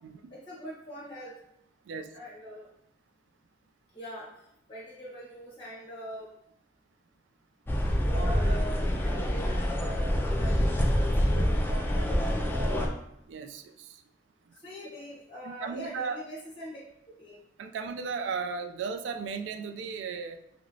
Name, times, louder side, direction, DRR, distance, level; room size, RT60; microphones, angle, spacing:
voice 1, 0.3-1.4 2.1-2.7 3.9-6.3 8.0-12.8 14.5-16.8 17.2-17.4, right 1 dB, 30° left, -6 dB, 1.0 m, -43 dB
sound 1, 7.7-12.9, equal, 10° left, 0.3 m, -26 dB
voice 2, 13.3-14.0 15.4-16.2 17.6-20.4, right 5 dB, 85° right, 6 dB, 0.3 m, -35 dB
3.1 x 2.9 x 2.6 m, 0.78 s
head